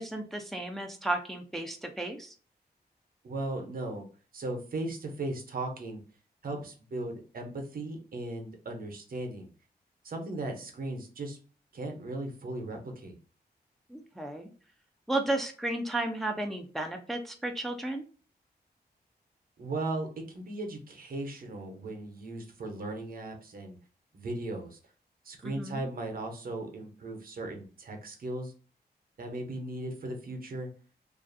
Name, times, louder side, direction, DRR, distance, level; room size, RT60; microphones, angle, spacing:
voice 1, 0.0-2.3 13.9-14.5 15.1-18.1 25.4-25.8, right 2 dB, ahead, 3 dB, 0.4 m, -33 dB
voice 2, 3.2-4.0 4.3-6.0 6.4-9.5 10.0-11.4 11.7-13.1 19.6-23.8 24.1-24.8 25.2-28.5 29.2-30.7, right 2 dB, 60° right, 3 dB, 0.7 m, -37 dB
2.5 x 2.3 x 2.5 m, 0.39 s
cardioid pair, 75°, 17 cm